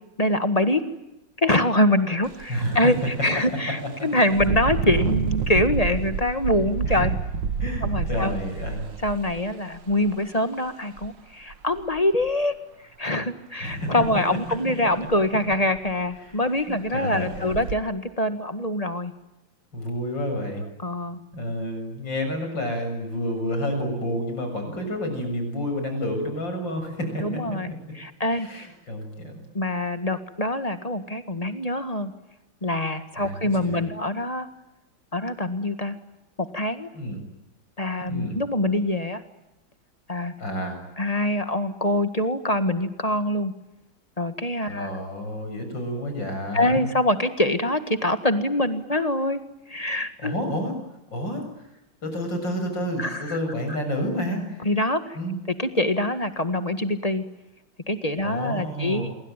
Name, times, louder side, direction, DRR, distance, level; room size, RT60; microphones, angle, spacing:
voice 1, 0.2-0.8 1.4-7.1 7.8-8.4 9.0-12.5 13.0-19.1 20.8-21.2 27.2-28.7 29.5-32.1 32.6-34.5 35.1-36.0 36.4-36.9 37.8-39.2 40.1-40.3 41.0-43.5 44.2-44.9 46.5-49.4 49.7-50.4 53.0-53.4 54.7-55.2 55.6-57.2 57.9-59.1, left 1 dB, 20° left, 9 dB, 1.7 m, -24 dB
Engine, 2.2-2.4 2.9-3.1 4.3-10.1 11.0-11.1 11.5-12.2 14.0-14.2 14.5-14.6 15.1-15.2 15.5-16.0 16.6-16.7 17.3-17.7, right 6 dB, 70° right, 2.0 m, -28 dB
voice 2, 2.5-2.9 6.9-7.0 7.6-8.9 13.6-14.0 16.2-17.6 19.7-20.6 21.3-27.3 28.3-29.5 33.2-33.8 36.9-37.2 38.1-38.4 40.4-40.8 44.7-46.9 50.2-50.7 51.1-51.7 52.0-54.7 55.1-55.4 58.2-59.1, equal, 70° left, 5 dB, 7.8 m, -30 dB
27.5 x 23.5 x 9.1 m, 0.92 s
omnidirectional pair, 2.1 m